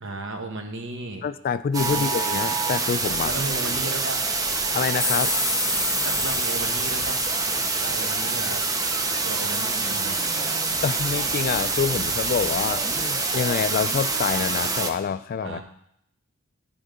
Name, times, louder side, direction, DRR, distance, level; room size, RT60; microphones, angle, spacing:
voice 1, 0.0-1.2 1.9-2.1 3.2-4.4 6.0-7.3 7.8-8.7 9.2-10.2 15.4-15.6, right 2 dB, 60° right, 4 dB, 1.1 m, -34 dB
voice 2, 1.2-3.3 4.7-5.3 10.8-15.6, left 6 dB, 45° left, 14 dB, 0.3 m, -26 dB
sound 1, 1.7-14.9, right 3 dB, 15° right, 0.5 m, -26 dB
sound 2, 5.0-9.7, left 3 dB, 5° left, 1.1 m, -31 dB
11.0 x 3.9 x 5.1 m, 0.74 s
head